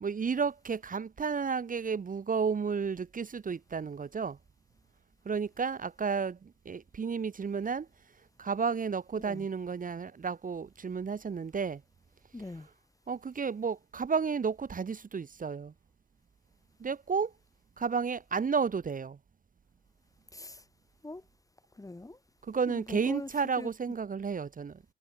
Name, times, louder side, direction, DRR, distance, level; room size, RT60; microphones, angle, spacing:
voice 1, 0.0-4.4 5.2-7.9 8.4-11.8 13.1-15.7 16.8-17.3 17.8-19.2 22.4-24.8, right 5 dB, 40° right, 0.9 m, -32 dB
voice 2, 12.3-12.7 20.3-20.6 21.0-21.2 21.8-22.2 22.7-23.3 23.6-23.7, left 2 dB, 15° left, 1.0 m, -42 dB
cardioid pair, 60°, 21 cm